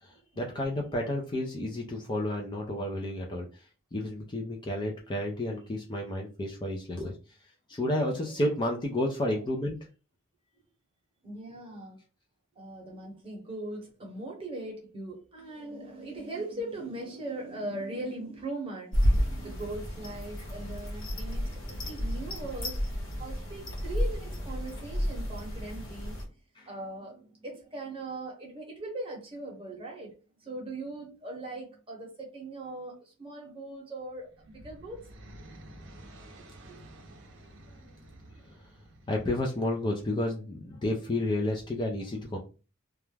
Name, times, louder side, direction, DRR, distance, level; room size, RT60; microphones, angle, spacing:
voice 1, 0.0-7.4 7.7-9.8 26.6-26.7 38.4-38.6 39.1-42.4, left 1 dB, 20° left, 0 dB, 0.4 m, -31 dB
voice 2, 11.2-12.0 12.6-22.8 23.2-26.3 26.6-30.1 30.4-35.1 36.7-36.8, right 2 dB, 25° right, -1 dB, 0.9 m, -40 dB
sound 1, 18.9-26.2, equal, 70° left, 1.1 m, -31 dB
sound 2, 34.1-40.1, right 1 dB, 60° right, 0.6 m, -51 dB
2.3 x 2.1 x 3.1 m, 0.34 s
head